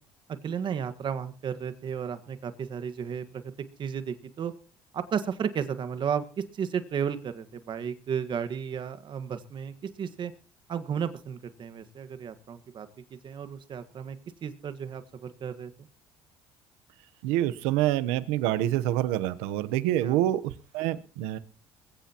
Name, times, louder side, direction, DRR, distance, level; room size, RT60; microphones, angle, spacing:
voice 1, 0.4-4.5 4.9-10.3 10.7-12.9 13.2-14.2 14.4-15.9 20.0-20.2, right 7 dB, 50° right, 10 dB, 1.6 m, -33 dB
voice 2, 17.2-21.4, right 13 dB, 85° right, 13 dB, 1.0 m, -27 dB
21.0 x 15.5 x 3.0 m, 0.37 s
supercardioid pair, 80°, 10 cm